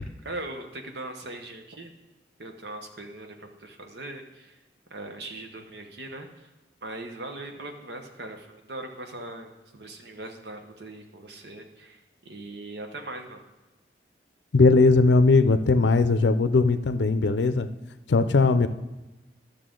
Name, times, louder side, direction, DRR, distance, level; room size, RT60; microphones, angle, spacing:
voice 1, 0.0-1.9 2.4-4.6 4.9-6.5 6.8-13.4, right 2 dB, 70° right, 4 dB, 1.1 m, -40 dB
voice 2, 14.5-17.7 18.1-18.7, left 3 dB, 80° left, 11 dB, 0.5 m, -19 dB
12.5 x 6.6 x 3.8 m, 1.1 s
head